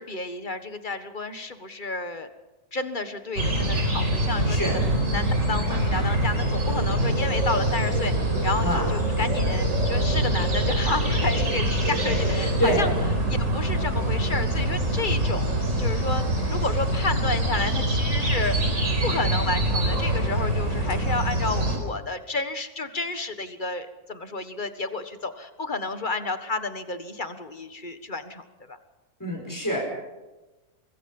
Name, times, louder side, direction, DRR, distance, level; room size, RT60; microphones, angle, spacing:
voice 1, 0.0-2.3 2.7-4.8 5.1-12.9 13.3-16.2 16.5-28.8, left 3 dB, 35° left, 9 dB, 1.6 m, -31 dB
sound 1, 3.4-21.8, right 1 dB, 55° right, 4.8 m, -24 dB
voice 2, 4.4-4.8 8.6-8.8 12.6-12.9 29.2-29.8, equal, 10° left, -1 dB, 5.1 m, -25 dB
24.5 x 22.0 x 5.5 m, 1.1 s
omnidirectional pair, 1.6 m